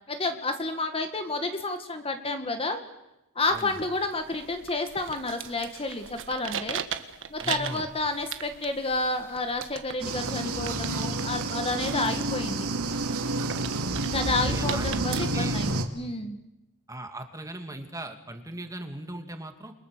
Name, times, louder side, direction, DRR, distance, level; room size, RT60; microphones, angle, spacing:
voice 1, 0.1-2.8 3.3-6.8 7.3-12.7 14.0-16.4, left 2 dB, 25° left, 6 dB, 1.8 m, -30 dB
sound 1, 3.5-15.3, right 7 dB, 60° right, 1.5 m, -39 dB
voice 2, 7.4-7.9 14.5-15.6 16.9-19.7, right 1 dB, 15° right, 5 dB, 2.4 m, -39 dB
sound 2, 10.0-15.8, right 2 dB, 75° right, 2.7 m, -29 dB
29.5 x 23.0 x 6.8 m, 0.93 s
head